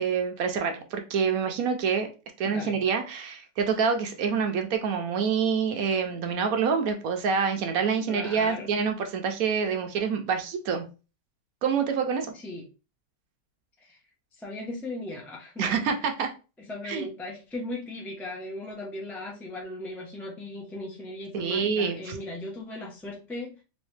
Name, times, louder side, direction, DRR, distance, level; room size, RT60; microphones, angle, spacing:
voice 1, 0.0-2.1 2.4-10.9 11.6-12.3 15.6-16.3 16.8-17.1 21.3-22.2, right 6 dB, 65° right, 5 dB, 0.9 m, -27 dB
voice 2, 2.4-2.7 8.1-8.7 12.3-12.7 13.8-14.0 14.3-15.8 16.7-23.6, left 2 dB, ahead, -2 dB, 0.5 m, -37 dB
3.4 x 3.1 x 3.2 m, 0.32 s
omnidirectional pair, 1.9 m